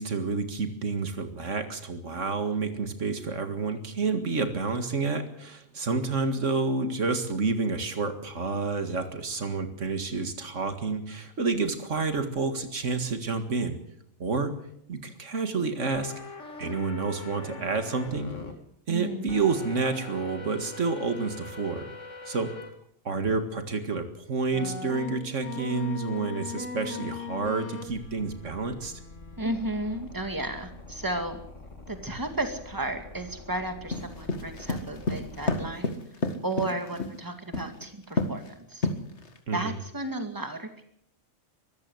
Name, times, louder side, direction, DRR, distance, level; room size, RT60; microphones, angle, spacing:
voice 1, 0.0-13.8 14.2-14.6 14.9-16.1 16.6-18.3 18.9-21.9 22.3-22.5 23.0-29.0 39.5-39.7, right 4 dB, 85° right, 8 dB, 2.3 m, -29 dB
sound 1, 15.9-18.5 19.3-22.7 23.3-23.4 24.5-35.7, left 4 dB, 85° left, 2.9 m, -42 dB
voice 2, 18.9-19.4 29.4-31.4 31.9-36.0 36.4-38.9 39.5-40.8, right 1 dB, 15° right, 6 dB, 2.3 m, -33 dB
sound 2, 33.9-37.2 37.5-37.8 38.2-38.5 38.8-39.4, left 3 dB, 65° left, 2.2 m, -29 dB
23.5 x 14.5 x 8.0 m, 0.72 s
omnidirectional pair, 1.2 m